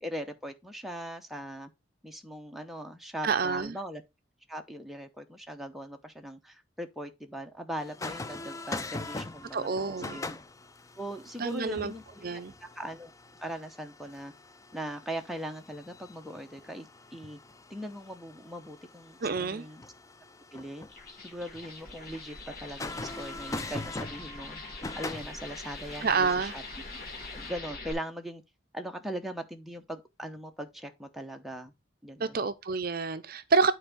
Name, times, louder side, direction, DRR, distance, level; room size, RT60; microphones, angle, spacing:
voice 1, 0.0-1.7 2.0-4.0 4.5-10.4 11.0-12.2 12.6-13.1 13.4-14.3 14.7-17.4 17.7-19.8 20.5-20.9 21.2-24.6 25.0-26.6 27.3-28.4 28.7-31.7 32.0-32.4, equal, ahead, 0.8 m, -40 dB
voice 2, 3.2-3.8 9.5-10.2 11.4-11.9 12.2-12.5 19.2-19.7 26.0-26.5 32.2-33.7, right 4 dB, 50° right, 0.5 m, -28 dB
sound 1, 7.8-27.5, left 2 dB, 15° left, 0.4 m, -43 dB
sound 2, 20.8-27.9, left 3 dB, 45° left, 2.3 m, -43 dB
9.6 x 4.5 x 3.7 m
head